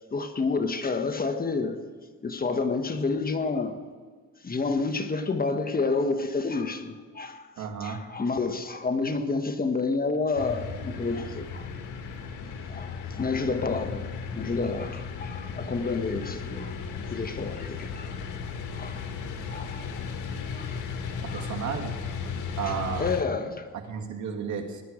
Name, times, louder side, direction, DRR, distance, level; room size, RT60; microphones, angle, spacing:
voice 1, 0.1-1.8 2.2-3.8 4.4-7.5 7.8-11.7 12.7-18.2 18.7-19.1 19.5-20.0 20.5-20.8 21.3-21.5 22.6-23.7, left 4 dB, 30° left, 1.4 m, -29 dB
voice 2, 7.6-8.0 21.2-22.0 22.6-23.1 23.7-24.8, right 7 dB, 70° right, 2.1 m, -33 dB
sound 1, 10.4-23.2, left 5 dB, 85° left, 1.9 m, -35 dB
19.5 x 11.5 x 5.0 m
cardioid pair, 90°, 30 cm